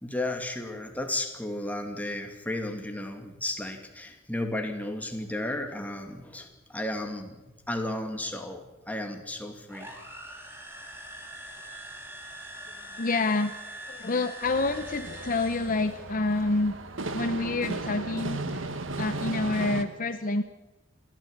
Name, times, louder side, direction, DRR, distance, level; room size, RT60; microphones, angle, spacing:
voice 1, 0.0-7.4 7.7-9.9, left 1 dB, 10° left, 4 dB, 2.6 m, -34 dB
sound 1, 9.7-16.0, right 1 dB, 10° right, 3.5 m, -43 dB
voice 2, 13.0-13.5 13.9-16.7 17.1-18.6 19.0-20.4, left 2 dB, 45° left, 9 dB, 0.9 m, -28 dB
sound 2, 14.4-19.8, right 2 dB, 80° right, 1.8 m, -35 dB
28.5 x 13.5 x 8.8 m, 1.1 s
head